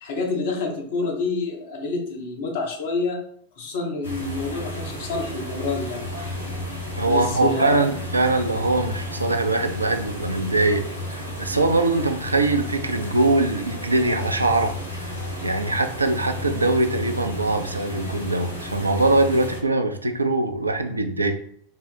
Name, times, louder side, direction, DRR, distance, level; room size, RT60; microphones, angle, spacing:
voice 1, 0.0-3.2 3.6-6.1 7.1-7.9, left 3 dB, 60° left, 1 dB, 1.0 m, -28 dB
sound 1, 4.0-19.6, left 1 dB, 90° left, 1.1 m, -33 dB
voice 2, 7.0-10.8 11.1-15.1 15.4-21.3, right 2 dB, 85° right, 6 dB, 0.4 m, -22 dB
3.7 x 2.0 x 4.2 m, 0.64 s
figure-of-eight pair, 90°, 0 cm